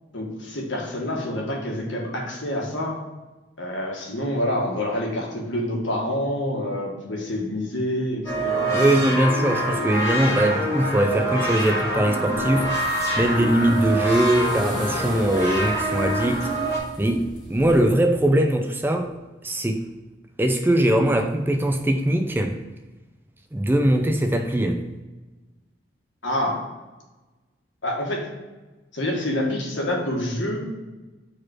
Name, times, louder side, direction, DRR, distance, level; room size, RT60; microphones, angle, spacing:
voice 1, 0.1-3.0 3.6-9.2 26.2-26.6 27.8-28.3 28.9-30.8, left 1 dB, 80° left, -1 dB, 1.7 m, -27 dB
sound 1, 8.2-16.8, right 1 dB, 15° left, 1.7 m, -25 dB
voice 2, 8.7-12.8 13.2-16.5 17.0-19.1 19.4-19.8 20.4-22.6 23.5-24.8, right 1 dB, 10° right, 5 dB, 0.4 m, -21 dB
sound 2, 12.3-17.9, left 1 dB, 40° left, 1.8 m, -40 dB
5.0 x 4.3 x 6.0 m, 1.2 s
head